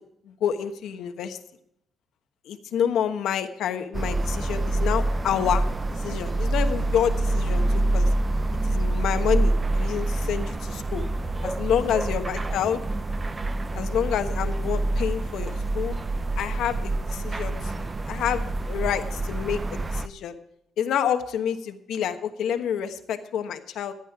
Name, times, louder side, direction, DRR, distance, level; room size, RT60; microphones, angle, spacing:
voice 1, 0.2-1.4 2.4-5.6 5.9-8.1 8.6-10.5 10.9-11.0 11.4-12.8 13.7-16.0 16.4-20.3 20.8-23.9, left 9 dB, 80° left, 8 dB, 1.2 m, -28 dB
sound 1, 3.9-20.1, right 2 dB, 25° right, 0.6 m, -26 dB
14.5 x 9.2 x 4.8 m, 0.74 s
cardioid pair, 115°, 0 cm